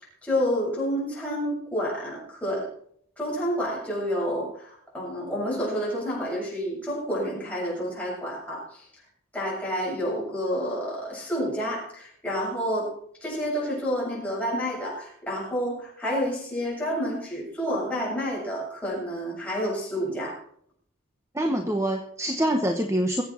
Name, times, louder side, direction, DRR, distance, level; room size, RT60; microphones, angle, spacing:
voice 1, 0.2-2.7 3.2-8.8 9.3-12.9 13.2-20.4, equal, 5° left, -5 dB, 7.2 m, -29 dB
voice 2, 21.3-23.2, right 1 dB, 15° right, 5 dB, 0.9 m, -25 dB
22.5 x 8.2 x 4.4 m, 0.63 s
head